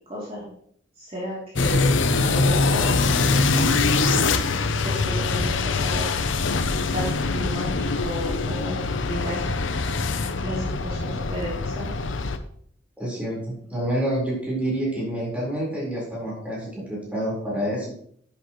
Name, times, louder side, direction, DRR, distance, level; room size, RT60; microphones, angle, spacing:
voice 1, 0.1-0.5 1.0-3.9 4.8-6.1 6.9-9.5 10.4-11.9, equal, 30° right, -7 dB, 3.1 m, -33 dB
sound 1, 1.6-12.4, left 3 dB, 80° left, 0.7 m, -23 dB
voice 2, 13.0-17.9, right 1 dB, 5° right, -5 dB, 4.4 m, -28 dB
10.5 x 9.0 x 3.1 m, 0.63 s
head